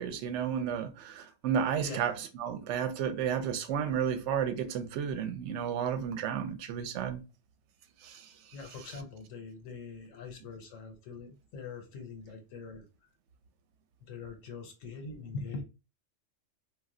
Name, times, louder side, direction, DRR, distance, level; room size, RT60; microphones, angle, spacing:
voice 1, 0.0-2.1 2.4-7.2 8.0-8.2, right 8 dB, 70° right, 0.8 m, -32 dB
voice 2, 8.5-12.9 14.0-15.6, left 4 dB, 80° left, 1.0 m, -43 dB
2.2 x 2.1 x 3.6 m
omnidirectional pair, 1.3 m